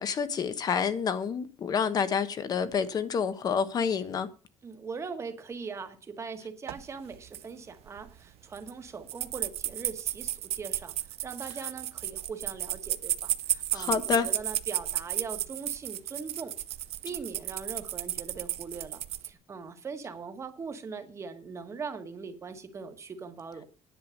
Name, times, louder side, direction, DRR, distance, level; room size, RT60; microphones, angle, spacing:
voice 1, 0.0-4.3 13.7-14.3, left 6 dB, 35° left, 1.1 m, -28 dB
voice 2, 4.6-16.6 17.0-23.6, right 5 dB, 25° right, 1.5 m, -41 dB
sound 1, 6.7-6.8 7.1-7.4 7.9-8.1 8.6-8.7 9.1-19.3, right 13 dB, 60° right, 0.7 m, -33 dB
10.5 x 7.7 x 6.6 m
cardioid pair, 180°, 11 cm